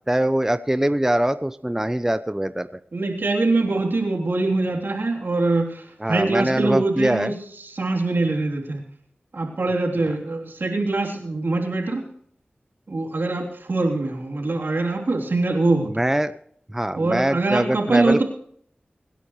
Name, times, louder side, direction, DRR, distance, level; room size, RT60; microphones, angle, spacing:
voice 1, 0.1-2.8 6.0-7.3 15.8-16.3 16.7-18.2, right 1 dB, 10° right, 12 dB, 0.6 m, -23 dB
voice 2, 2.9-7.3 7.6-8.8 9.3-12.0 12.9-16.1 16.9-18.2, right 2 dB, 70° right, 0 dB, 3.3 m, -23 dB
24.5 x 10.0 x 3.2 m, 0.63 s
cardioid pair, 40°, 4 cm